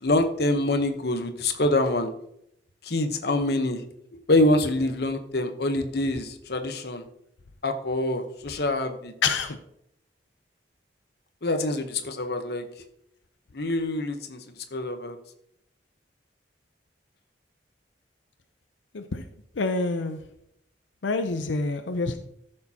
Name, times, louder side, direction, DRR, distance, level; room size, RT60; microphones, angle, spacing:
voice 1, 0.0-2.1 2.8-3.8 4.3-7.0 7.6-9.1 11.4-12.6 13.5-14.4 14.7-15.2, left 2 dB, 60° left, 7 dB, 0.9 m, -25 dB
voice 2, 9.2-9.6 18.9-19.2 19.6-20.2 21.0-22.2, left 3 dB, 85° left, 7 dB, 0.6 m, -27 dB
15.0 x 6.6 x 2.8 m, 0.75 s
head